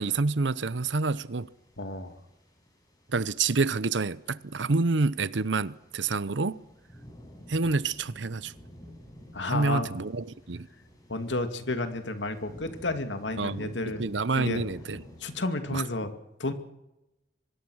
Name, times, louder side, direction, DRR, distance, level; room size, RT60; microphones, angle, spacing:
voice 1, 0.0-1.5 3.1-6.7 7.5-8.5 9.5-10.7 13.4-15.0 15.7-15.8, right 3 dB, 85° right, 0.8 m, -28 dB
sound 1, 0.7-15.5, equal, 20° left, 6.3 m, -52 dB
voice 2, 1.8-2.1 9.3-9.9 11.1-14.1 14.4-14.6 15.2-16.1 16.4-16.5, left 2 dB, 85° left, 2.2 m, -31 dB
24.5 x 20.5 x 6.4 m
head